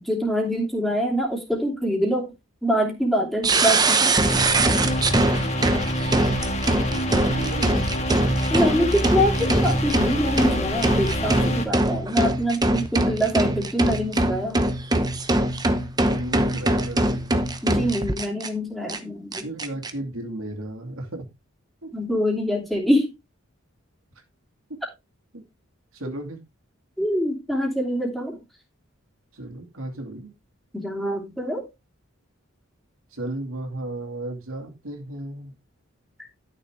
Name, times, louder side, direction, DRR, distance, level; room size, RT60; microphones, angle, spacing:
voice 1, 0.0-2.3 2.6-4.1 8.5-14.6 17.6-19.5 21.9-23.1 27.0-28.4 30.7-31.6, equal, ahead, 2.9 m, -25 dB
sound 1, 3.4-18.5 18.9-19.0 19.3-19.9, right 2 dB, 20° right, 0.9 m, -23 dB
sound 2, 4.2-11.7, equal, 30° left, 1.8 m, -26 dB
voice 2, 6.9-7.9 16.1-17.4 19.4-21.3 21.8-21.9 25.3-25.4 25.9-26.4 29.3-30.3 33.1-35.5, right 1 dB, 75° right, 2.5 m, -34 dB
12.0 x 6.8 x 3.6 m
head